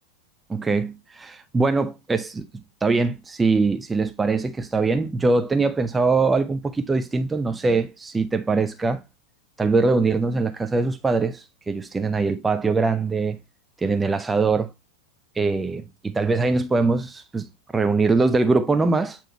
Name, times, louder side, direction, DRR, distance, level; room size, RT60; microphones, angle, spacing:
voice 1, 0.5-2.5 2.8-9.0 9.6-13.4 13.8-14.7 15.4-19.2, right 3 dB, 10° right, 0.4 m, -22 dB
8.8 x 3.0 x 4.3 m
figure-of-eight pair, 90°, 0 cm